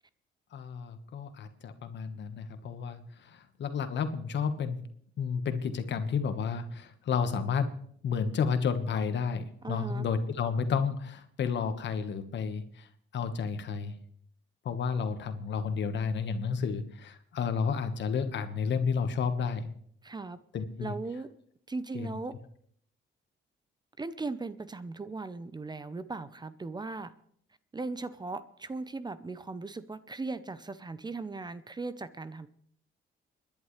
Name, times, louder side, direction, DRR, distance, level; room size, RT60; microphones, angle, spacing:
voice 1, 0.5-4.8 5.2-7.7 8.0-12.9 13.1-13.9 14.6-19.7 20.5-20.9 21.9-22.1, left 6 dB, 65° left, 9 dB, 1.4 m, -31 dB
voice 2, 9.6-10.1 20.0-20.4 20.8-21.3 21.7-22.4 24.0-27.1 27.7-32.5, right 3 dB, 20° right, 14 dB, 0.7 m, -38 dB
29.5 x 10.5 x 3.3 m, 0.64 s
cardioid pair, 90°, 20 cm